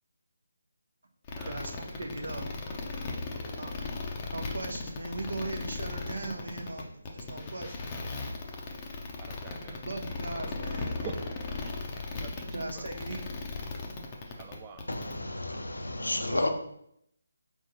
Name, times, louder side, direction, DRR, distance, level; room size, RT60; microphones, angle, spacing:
sound 1, 1.2-15.1, left 3 dB, 25° left, 0.6 m, -37 dB
voice 1, 1.3-2.5 2.9-3.0 3.6-3.8 4.3-8.0 9.9-11.2 12.5-13.4 16.2-16.5, right 2 dB, 65° right, 4 dB, 0.7 m, -39 dB
voice 2, 9.2-9.8 11.0-11.1 11.6-11.7 12.2-12.9 14.3-14.8, right 8 dB, 20° right, 7 dB, 0.4 m, -45 dB
voice 3, 14.9-16.5, left 2 dB, 75° left, 5 dB, 0.7 m, -31 dB
4.6 x 3.5 x 2.7 m, 0.74 s
figure-of-eight pair, 150°, 0 cm